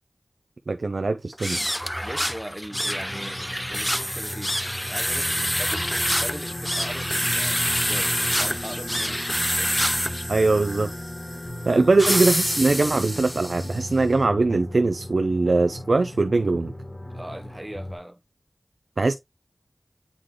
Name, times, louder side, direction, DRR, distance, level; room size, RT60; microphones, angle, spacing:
voice 1, 0.7-1.7 10.3-10.9 11.7-16.7 19.0-19.1, right 3 dB, 85° right, 0.4 m, -21 dB
sound 1, 1.3-13.8, equal, 5° left, 0.5 m, -27 dB
voice 2, 2.0-4.6 4.9-9.8 11.6-11.9 17.1-18.2, right 1 dB, 15° right, 1.0 m, -39 dB
sound 2, 2.7-18.0, left 1 dB, 35° left, 2.0 m, -36 dB
8.3 x 3.8 x 3.0 m
wide cardioid pair, 50°, 0 cm